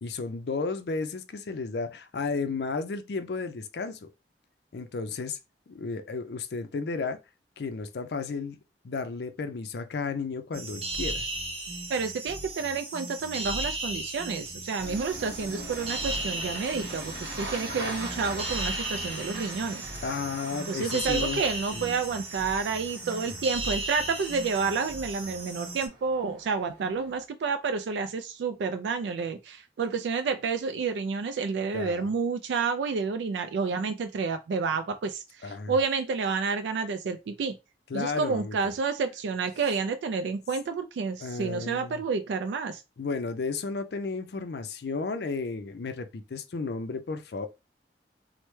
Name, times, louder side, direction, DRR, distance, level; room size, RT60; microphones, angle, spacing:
voice 1, 0.0-4.1 4.7-5.4 5.7-7.2 7.6-8.6 8.8-11.3 20.0-21.4 21.7-21.9 31.7-32.1 35.4-35.7 37.9-38.6 41.2-42.0 43.0-47.5, left 4 dB, 65° left, 0.4 m, -33 dB
sound 1, 10.5-25.9, right 2 dB, 30° right, 0.7 m, -36 dB
voice 2, 11.9-19.9 20.7-37.6 37.9-42.8, right 5 dB, 85° right, 0.3 m, -30 dB
Engine starting, 14.8-27.2, right 1 dB, 60° right, 1.1 m, -42 dB
3.2 x 2.1 x 3.1 m
head